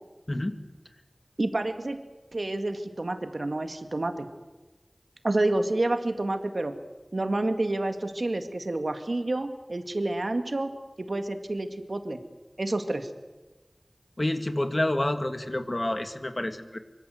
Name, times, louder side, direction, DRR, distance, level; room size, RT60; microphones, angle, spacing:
voice 1, 1.4-2.0 2.3-4.3 5.2-6.8 7.1-10.7 11.0-12.2 12.6-13.1, right 2 dB, 70° right, 7 dB, 2.1 m, -29 dB
voice 2, 14.2-16.8, left 1 dB, 40° left, 8 dB, 1.9 m, -28 dB
24.0 x 24.0 x 7.8 m, 1.2 s
wide cardioid pair, 50°, 0 cm